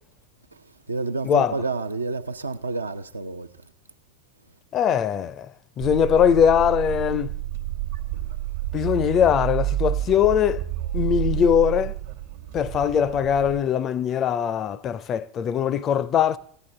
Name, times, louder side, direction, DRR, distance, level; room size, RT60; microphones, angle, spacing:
voice 1, 0.9-3.5, right 3 dB, 80° right, 0.5 m, -29 dB
voice 2, 4.7-5.5 5.8-7.3 8.7-10.6 10.9-11.9 12.5-16.4, left 8 dB, 35° left, 0.4 m, -21 dB
sound 1, 5.8-13.6, right 14 dB, 65° right, 1.2 m, -29 dB
15.0 x 9.8 x 3.2 m
figure-of-eight pair, 80°, 0 cm